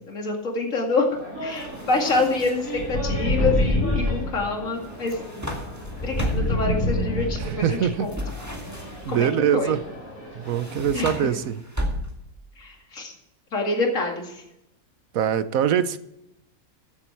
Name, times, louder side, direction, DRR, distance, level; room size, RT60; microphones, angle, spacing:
voice 1, 0.1-1.0 1.4-5.2 6.0-8.2 9.1-9.8 10.9-11.4 12.6-13.1 13.5-14.4, left 3 dB, 65° left, 1 dB, 2.7 m, -26 dB
sound 1, 1.1-11.0, equal, 90° left, 4.7 m, -38 dB
sound 2, 1.6-2.8 4.8-6.7 8.1-9.2 10.4-12.4, equal, 10° right, 1.8 m, -34 dB
sound 3, 2.8-4.3 5.8-7.7, left 1 dB, 35° left, 3.2 m, -24 dB
voice 2, 7.4-8.1 9.0-9.8 10.3-11.6 15.1-16.0, right 9 dB, 75° right, 14 dB, 1.2 m, -23 dB
15.5 x 8.5 x 4.5 m, 0.84 s
omnidirectional pair, 1.5 m